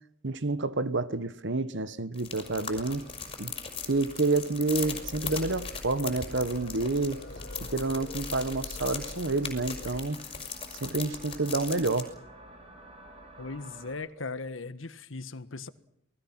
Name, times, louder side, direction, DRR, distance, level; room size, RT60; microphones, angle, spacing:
voice 1, 0.2-3.0 3.4-3.5 3.9-7.2 7.6-10.2 10.8-12.1, right 3 dB, 65° right, 1.3 m, -29 dB
sound 1, 2.1-12.0, left 6 dB, 30° left, 5.5 m, -39 dB
sound 2, 2.4-13.9, right 1 dB, 35° right, 6.1 m, -52 dB
sound 3, 4.7-10.1, left 2 dB, 50° left, 1.2 m, -43 dB
voice 2, 13.4-15.7, left 3 dB, 75° left, 1.5 m, -38 dB
28.0 x 20.0 x 6.1 m
head